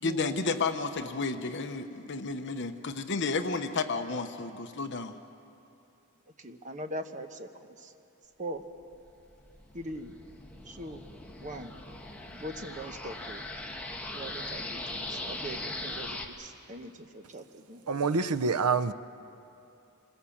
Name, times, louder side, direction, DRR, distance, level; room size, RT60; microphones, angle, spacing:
voice 1, 0.0-5.2, left 4 dB, 55° left, 1.0 m, -32 dB
voice 2, 6.4-7.9 8.4-8.6 9.7-10.1 10.7-11.0 11.4-11.7 12.3-13.4 14.1-18.0, right 1 dB, 35° right, 1.2 m, -41 dB
sound 1, 8.9-16.2, left 2 dB, 5° left, 1.5 m, -40 dB
voice 3, 17.9-18.9, right 4 dB, 85° right, 0.7 m, -26 dB
26.5 x 21.5 x 7.2 m
head